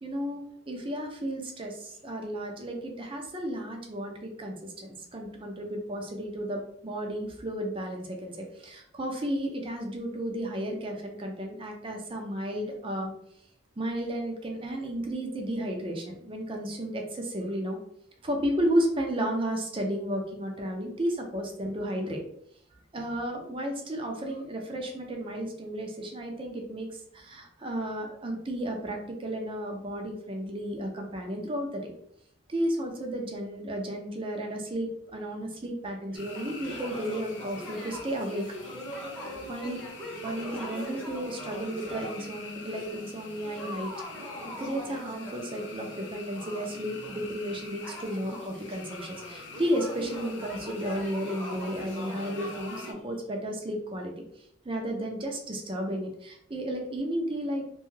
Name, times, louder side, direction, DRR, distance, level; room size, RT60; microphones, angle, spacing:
voice 1, 0.0-13.1 13.8-17.8 18.2-22.2 22.9-31.9 32.5-38.6 39.5-39.8 40.2-43.9 44.6-57.6, equal, 25° right, 2 dB, 0.5 m, -33 dB
sound 1, 36.1-52.9, left 4 dB, 60° left, 0.5 m, -46 dB
sound 2, 36.1-42.3 42.7-53.0, equal, 5° left, 0.8 m, -42 dB
2.6 x 2.3 x 3.1 m, 0.71 s
head